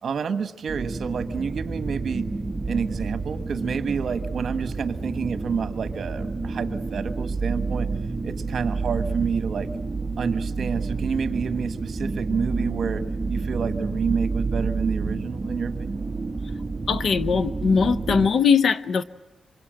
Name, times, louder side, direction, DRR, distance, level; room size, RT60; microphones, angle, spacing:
voice 1, 0.0-2.3 2.7-7.9 8.2-9.7 10.2-13.0 13.3-16.0, right 6 dB, 65° right, 1.3 m, -29 dB
sound 1, 0.7-18.3, right 3 dB, 20° right, 1.7 m, -29 dB
voice 2, 16.9-19.0, left 6 dB, 65° left, 0.8 m, -20 dB
26.0 x 24.5 x 7.8 m
wide cardioid pair, 135°, 0 cm